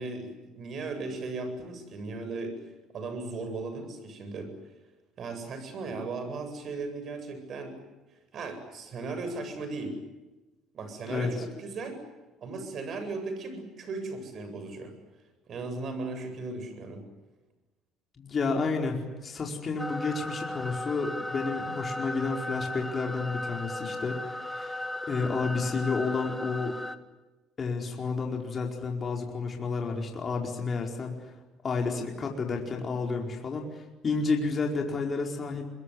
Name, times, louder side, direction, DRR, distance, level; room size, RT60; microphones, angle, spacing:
voice 1, 0.0-2.5 2.9-4.5 5.2-7.8 8.3-10.0 10.7-12.0 12.4-14.9 15.5-17.0, right 3 dB, 45° right, 8 dB, 8.0 m, -36 dB
voice 2, 18.2-19.0 19.2-26.8 27.6-31.2 31.6-35.7, left 4 dB, 30° left, 1 dB, 4.7 m, -31 dB
sound 1, 19.8-27.0, left 1 dB, 5° left, 1.7 m, -36 dB
26.0 x 22.0 x 9.7 m, 1.1 s
cardioid pair, 115°, 0 cm